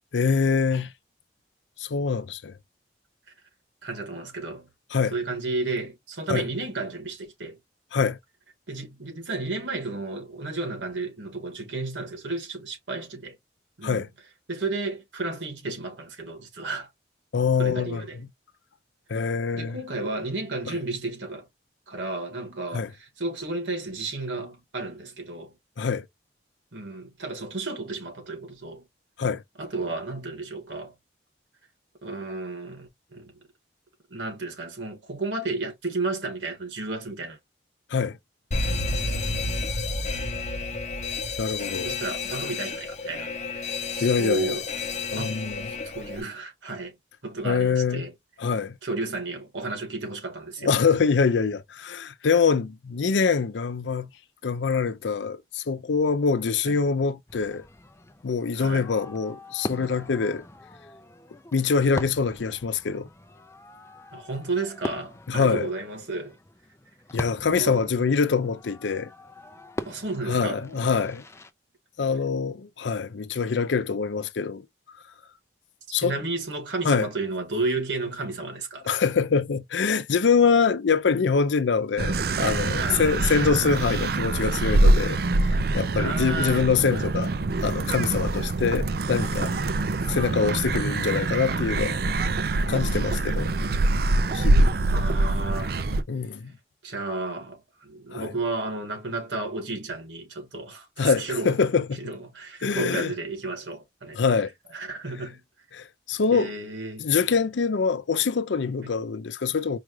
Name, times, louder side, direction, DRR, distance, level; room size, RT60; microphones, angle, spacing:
voice 1, 0.1-0.9 1.8-2.5 4.9-5.1 6.3-6.5 7.9-8.2 13.8-14.1 17.3-18.1 19.1-19.8 20.7-20.8 22.7-22.9 25.8-26.0 29.2-29.4 37.9-38.2 41.4-41.9 44.0-44.6 45.1-45.7 47.4-48.1 48.4-48.8 50.6-54.1 54.4-57.7 58.2-60.4 61.5-63.1 65.3-65.7 67.1-69.1 70.3-71.2 72.0-74.6 75.9-76.1 76.8-77.1 78.9-85.2 85.4-87.3 87.6-89.5 90.1-92.0 92.7-93.5 94.3-94.7 96.1-96.5 98.1-98.3 101.0-102.0 102.6-103.1 104.1-104.5 105.7-106.5 107.0-109.8, left 5 dB, 80° left, 0.5 m, -24 dB
voice 2, 3.8-4.7 5.1-7.6 8.7-13.4 13.8-14.1 14.5-16.9 17.6-18.2 19.5-21.5 21.9-25.5 26.7-28.9 29.6-30.9 32.0-33.3 34.1-37.4 41.8-44.7 45.1-45.4 45.8-47.0 47.2-48.1 48.8-50.7 56.7-56.8 58.5-58.9 64.1-66.4 67.4-67.9 69.8-70.6 76.0-78.9 82.8-83.0 86.0-86.7 89.5-89.9 94.9-95.8 96.8-101.6 102.0-104.2 104.7-105.4 106.3-107.1, right 3 dB, 85° right, 1.9 m, -32 dB
Alarm, 38.5-46.2, left 3 dB, 40° left, 0.8 m, -30 dB
Fireworks, 57.3-71.5, left 1 dB, 15° left, 0.4 m, -41 dB
sound 1, 82.0-96.0, right 2 dB, 55° right, 0.4 m, -24 dB
4.9 x 2.4 x 3.1 m
head